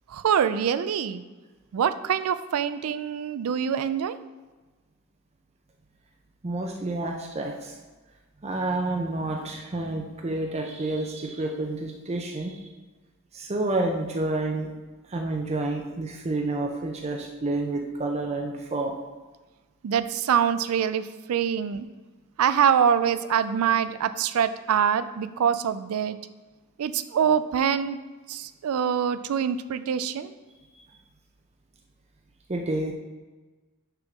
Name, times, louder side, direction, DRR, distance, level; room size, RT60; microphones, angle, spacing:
voice 1, 0.1-1.2 1.7-4.2 19.8-21.0 21.3-21.9 22.4-26.2 26.8-28.0 28.3-30.3, right 8 dB, 85° right, 13 dB, 0.4 m, -24 dB
voice 2, 6.4-7.8 8.4-12.7 13.3-14.7 15.1-18.9 30.7-30.8 32.5-32.9, right 2 dB, 30° right, 2 dB, 0.6 m, -29 dB
6.6 x 3.6 x 6.0 m, 1.3 s
head